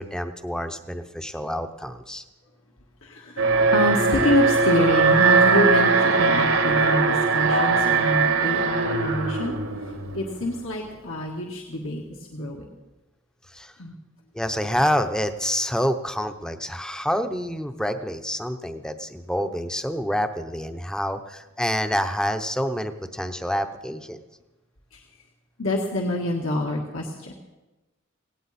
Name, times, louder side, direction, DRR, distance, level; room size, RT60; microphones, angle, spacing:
voice 1, 0.0-2.2 13.5-13.7 14.3-24.2, equal, 5° left, 8 dB, 0.7 m, -27 dB
voice 2, 3.0-3.5 3.7-9.5 10.1-12.0 12.3-12.6 13.8-13.9 24.9-25.0 25.6-27.3, left 1 dB, 75° left, -1 dB, 1.7 m, -26 dB
Alarm, 3.4-10.5, right 4 dB, 75° right, 1.6 m, -20 dB
17.5 x 17.5 x 4.2 m, 1.1 s
head